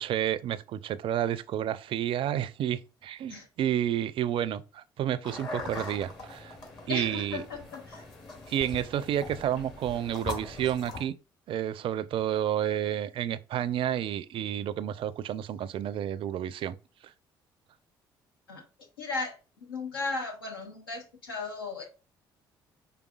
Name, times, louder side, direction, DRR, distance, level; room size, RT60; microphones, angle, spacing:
voice 1, 0.0-6.5 6.9-7.4 8.5-11.1 11.5-16.8, right 10 dB, 50° right, 0.4 m, -30 dB
sound 1, 5.2-11.0, left 3 dB, 45° left, 2.0 m, -41 dB
voice 2, 6.9-8.0 18.5-18.6 19.0-21.8, left 3 dB, 85° left, 0.8 m, -36 dB
4.9 x 3.4 x 2.3 m
figure-of-eight pair, 45°, 11 cm